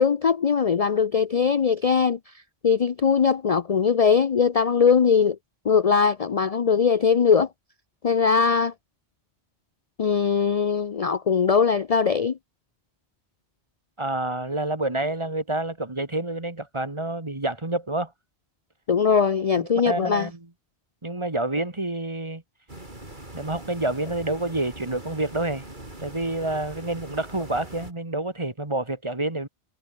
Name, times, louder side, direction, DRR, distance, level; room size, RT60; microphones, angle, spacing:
voice 1, 0.0-2.2 2.6-5.4 5.6-7.5 8.0-8.7 10.0-12.4 18.9-20.3, left 6 dB, 40° left, 0.6 m, -20 dB
voice 2, 14.0-18.1 19.6-20.5 21.0-22.4 23.3-25.6 26.0-29.5, right 2 dB, 25° right, 2.0 m, -28 dB
sound 1, 22.7-27.9, right 1 dB, 45° right, 5.1 m, -41 dB
omnidirectional pair, 1.1 m